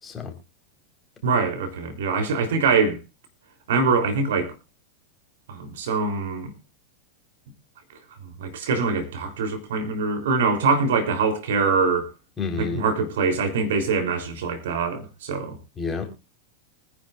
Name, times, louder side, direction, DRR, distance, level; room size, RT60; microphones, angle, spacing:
voice 1, 0.0-0.3 12.4-12.8 15.8-16.1, left 5 dB, 20° left, 4.1 m, -29 dB
voice 2, 1.2-3.0 3.7-4.5 5.5-6.5 8.2-12.1 12.6-15.6, right 4 dB, 60° right, 3.4 m, -23 dB
25.0 x 10.5 x 2.5 m
figure-of-eight pair, 90°, 0 cm